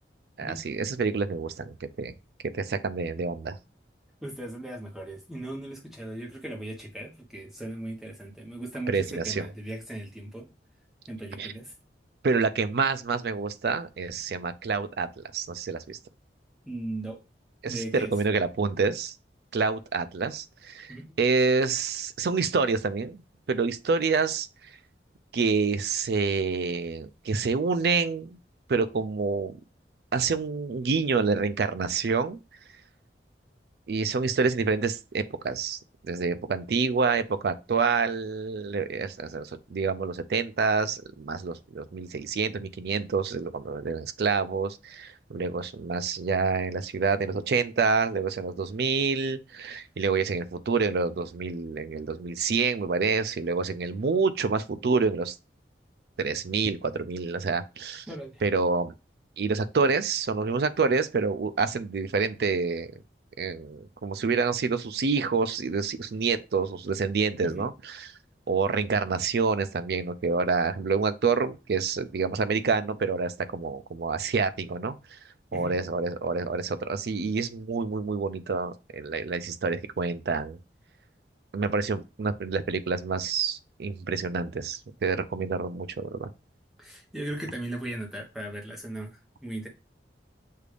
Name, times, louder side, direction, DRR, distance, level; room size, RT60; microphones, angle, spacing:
voice 1, 0.4-2.1 2.5-3.6 8.9-9.5 11.4-11.5 12.2-16.0 17.6-19.1 19.5-23.2 23.5-24.5 25.3-28.4 28.7-29.6 30.1-32.4 33.9-35.8 36.0-55.4 56.2-58.1 58.4-58.9 59.4-62.9 63.4-68.1 68.5-74.9 75.5-80.6 81.5-86.3, right 4 dB, 60° right, 0.4 m, -27 dB
voice 2, 4.2-10.5 11.1-11.7 16.7-17.2 17.6-18.1 20.9-21.1 58.1-58.4 67.4-67.7 75.5-75.7 86.8-89.7, right 1 dB, ahead, 1.0 m, -37 dB
6.5 x 2.5 x 3.3 m
head